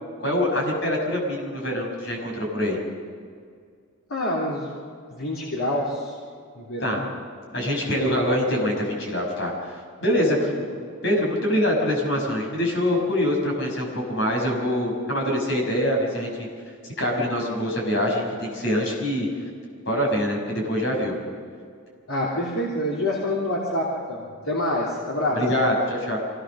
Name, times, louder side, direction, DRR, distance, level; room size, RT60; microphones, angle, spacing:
voice 1, 0.2-2.8 6.8-7.0 7.5-10.5 11.0-16.5 17.0-19.3 19.9-21.1 25.3-26.2, equal, 55° left, -1 dB, 6.2 m, -24 dB
voice 2, 4.1-4.7 5.1-6.2 6.5-7.0 10.2-10.5 22.1-25.4, left 1 dB, 80° left, -5 dB, 3.4 m, -27 dB
24.5 x 18.0 x 6.5 m, 2.1 s
head